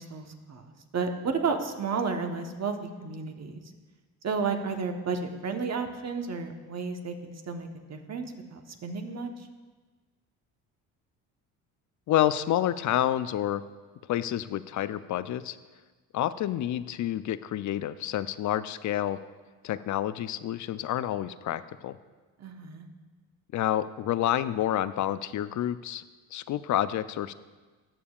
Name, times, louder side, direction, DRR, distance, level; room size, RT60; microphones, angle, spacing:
voice 1, 0.0-3.6 4.2-9.5 22.4-22.9, right 5 dB, 40° right, 5 dB, 1.2 m, -32 dB
voice 2, 12.1-13.6 14.1-15.6 16.1-19.2 19.6-22.0 23.5-26.0 26.3-27.3, left 12 dB, 45° left, 14 dB, 0.5 m, -29 dB
18.5 x 6.9 x 2.4 m, 1.3 s
supercardioid pair, 70°, 42 cm